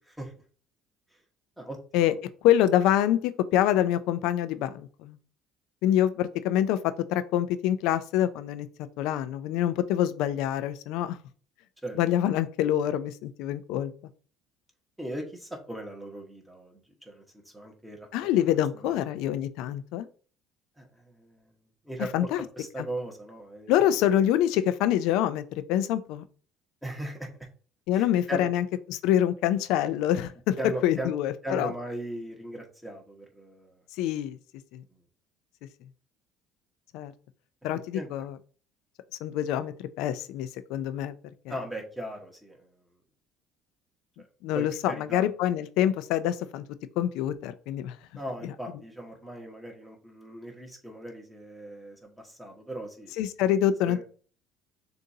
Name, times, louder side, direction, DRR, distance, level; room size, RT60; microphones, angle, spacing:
voice 1, 1.6-2.2 11.8-12.0 15.0-17.2 17.5-18.1 18.7-19.0 20.8-21.5 21.8-22.3 22.6-23.8 26.8-27.3 27.9-28.5 30.6-31.1 31.4-33.8 34.9-35.0 37.9-38.1 41.5-42.7 44.2-44.3 44.5-45.2 48.1-53.1 53.8-54.0, right 1 dB, ahead, 0 dB, 1.3 m, -38 dB
voice 2, 2.4-5.2 5.8-8.7 9.0-11.2 12.0-13.9 18.1-20.1 22.1-22.4 22.8-22.9 23.7-26.2 27.9-30.6 30.8-31.7 34.0-34.4 34.7-34.8 36.9-37.1 37.6-38.4 39.2-41.1 44.4-46.6 47.0-48.0 48.4-48.5 53.2-54.0, left 11 dB, 75° left, 12 dB, 0.4 m, -26 dB
6.5 x 2.6 x 2.8 m, 0.41 s
cardioid pair, 130°, 0 cm